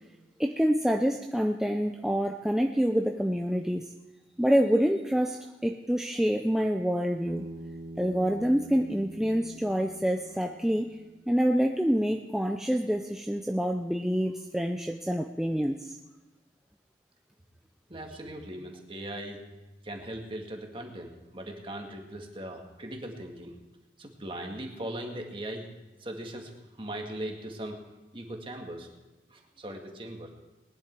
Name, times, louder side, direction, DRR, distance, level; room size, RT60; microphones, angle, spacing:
voice 1, 0.4-3.9 4.4-7.5 8.0-11.0 11.3-16.0, equal, 5° right, 3 dB, 0.5 m, -27 dB
Bass guitar, 7.3-11.6, right 1 dB, 85° right, 1.2 m, -45 dB
voice 2, 17.9-19.4 19.8-23.5 24.0-25.7 26.0-26.5 26.8-27.8 28.1-28.9 29.3-30.3, right 1 dB, 30° right, 2 dB, 1.9 m, -39 dB
20.0 x 10.5 x 4.6 m, 1.1 s
head